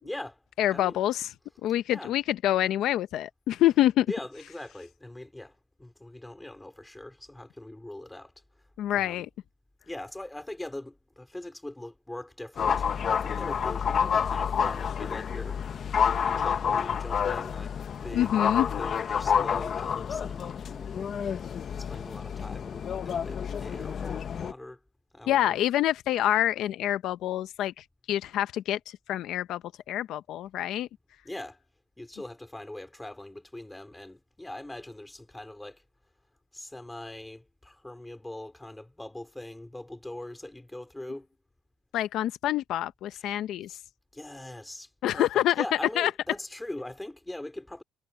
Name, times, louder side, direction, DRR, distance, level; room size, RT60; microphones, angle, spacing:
voice 1, 0.0-0.4 0.7-1.0 1.9-2.2 3.6-3.8 4.0-8.3 8.9-9.3 9.9-15.6 16.2-17.7 18.0-18.5 18.8-20.9 21.5-24.8 25.1-25.6 31.2-31.6 32.0-35.8 36.5-41.3 43.1-43.4 43.7-43.8 44.1-47.8, left 1 dB, 5° left, 4.0 m, -41 dB
voice 2, 0.6-1.3 1.6-4.1 8.8-9.3 18.1-18.7 25.3-29.6 29.9-30.9 41.9-43.8 45.0-46.1, left 13 dB, 75° left, 0.6 m, -26 dB
sound 1, 12.6-24.5, left 7 dB, 45° left, 0.9 m, -29 dB
cardioid pair, 150°, 0 cm